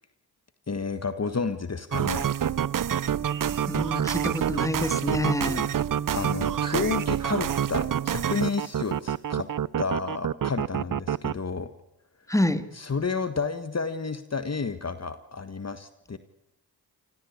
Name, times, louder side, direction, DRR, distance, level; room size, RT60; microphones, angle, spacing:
voice 1, 0.7-2.3 6.1-9.5 9.8-11.7 12.7-16.2, left 4 dB, 40° left, 11 dB, 1.7 m, -31 dB
sound 1, 1.9-11.3, right 9 dB, 50° right, 0.7 m, -27 dB
voice 2, 3.7-5.7 12.3-12.6, left 1 dB, 10° left, 11 dB, 2.5 m, -27 dB
28.0 x 15.5 x 8.4 m, 0.95 s
supercardioid pair, 45°, 40 cm